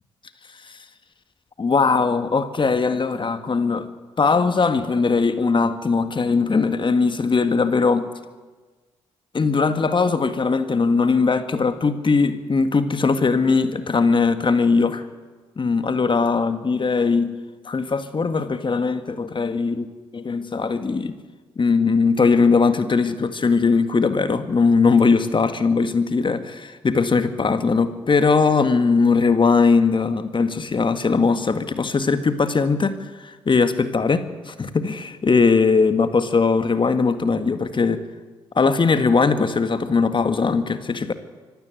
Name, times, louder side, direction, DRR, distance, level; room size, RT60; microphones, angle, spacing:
voice 1, 1.6-3.9 4.2-8.1 9.3-15.0 15.6-17.3 17.7-19.8 20.2-21.2 21.6-38.0 38.6-41.1, left 4 dB, 40° left, 10 dB, 1.9 m, -20 dB
25.5 x 15.0 x 8.0 m, 1.3 s
hypercardioid pair, 45°, 13 cm